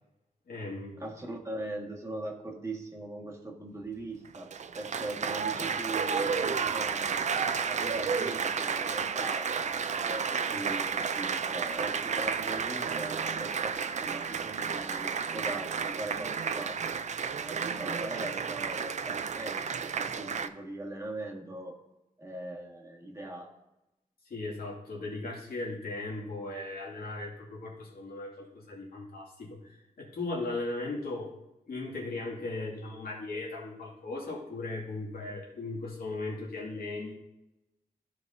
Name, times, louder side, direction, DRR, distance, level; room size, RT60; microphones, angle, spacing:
voice 1, 0.5-1.0 24.3-31.3 31.7-37.1, left 2 dB, 75° left, -4 dB, 2.3 m, -37 dB
voice 2, 1.0-7.3 7.6-16.8 17.4-21.8 22.2-23.5, right 2 dB, 20° right, -2 dB, 1.7 m, -41 dB
Applause, 4.3-20.5, right 6 dB, 50° right, 0.4 m, -32 dB
14.0 x 4.9 x 2.7 m, 0.94 s
wide cardioid pair, 90°, 15 cm